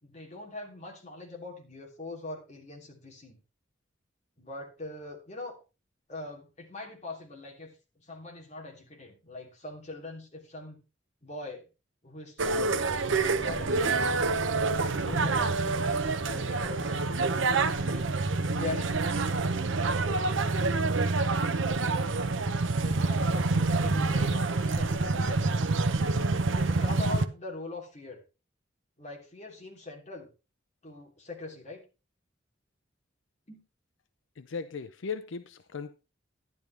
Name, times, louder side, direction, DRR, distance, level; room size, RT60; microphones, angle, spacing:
voice 1, 0.0-3.4 4.4-5.6 6.1-10.8 11.2-11.7 12.0-12.8 13.1-14.2 14.9-18.3 18.5-19.3 22.6-25.5 26.5-28.2 29.0-30.3 30.8-31.8 33.5-33.6, left 2 dB, 35° left, 3.1 m, -42 dB
sound 1, 12.4-27.2, right 3 dB, 80° right, 0.8 m, -27 dB
voice 2, 34.4-35.9, left 5 dB, 75° left, 0.6 m, -37 dB
12.0 x 10.5 x 3.3 m
head